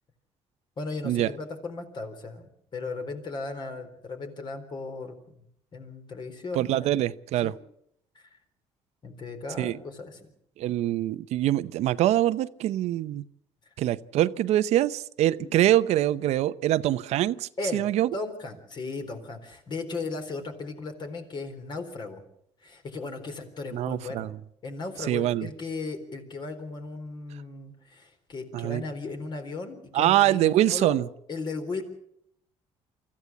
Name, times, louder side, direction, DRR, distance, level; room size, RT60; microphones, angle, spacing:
voice 1, 0.8-5.4 5.7-6.9 7.4-7.5 8.1-8.3 9.0-10.3 15.4-15.5 17.6-17.8 18.1-22.2 22.6-24.3 24.6-31.0 31.3-31.8, left 3 dB, 45° left, 6 dB, 4.0 m, -36 dB
voice 2, 6.5-7.5 9.6-9.8 10.6-13.2 13.8-18.1 23.7-24.3 25.1-25.5 28.5-28.8 29.9-31.1, right 13 dB, 75° right, 14 dB, 0.7 m, -24 dB
24.5 x 14.5 x 8.4 m, 0.73 s
cardioid pair, 120°, 11 cm